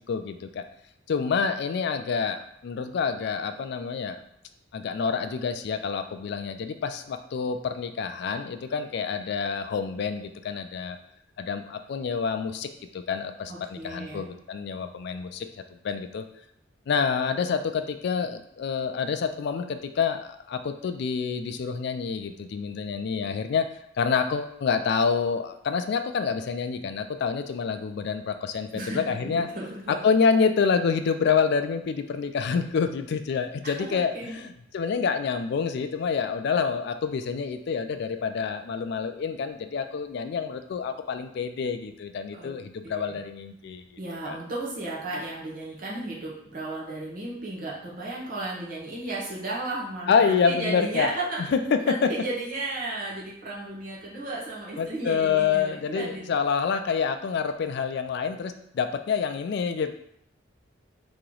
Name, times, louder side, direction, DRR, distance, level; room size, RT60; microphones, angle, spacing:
voice 1, 0.1-0.6 1.1-4.2 4.7-11.0 11.4-15.5 15.8-16.2 16.9-23.7 24.0-29.5 30.0-43.8 44.3-44.4 50.1-51.1 51.5-52.1 54.8-59.9, left 6 dB, 55° left, 8 dB, 0.3 m, -27 dB
voice 2, 13.5-14.2 28.7-30.0 33.6-34.4 42.4-42.6 42.8-43.2 44.0-51.4 51.8-56.4, right 2 dB, 45° right, -5 dB, 1.0 m, -34 dB
3.1 x 2.8 x 3.8 m, 0.72 s
head